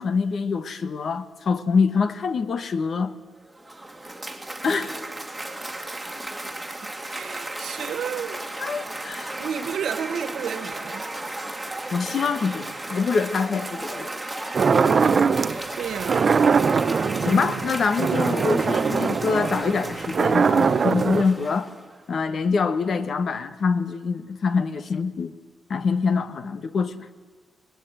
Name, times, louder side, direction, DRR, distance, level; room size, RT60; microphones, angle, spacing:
voice 1, 0.0-3.1 4.6-5.0 8.6-9.4 11.9-14.1 17.2-21.7 22.1-25.3 25.7-27.1, left 5 dB, 45° left, 1.3 m, -25 dB
Cheering / Applause, 3.4-22.0, right 1 dB, 5° right, 2.2 m, -35 dB
voice 2, 7.1-8.5 9.4-11.1 15.8-16.4 16.9-17.7, right 8 dB, 75° right, 1.8 m, -32 dB
sound 1, 14.5-15.6 16.0-21.2, right 5 dB, 35° right, 0.9 m, -21 dB
25.5 x 20.5 x 9.3 m
wide cardioid pair, 170°, 0 cm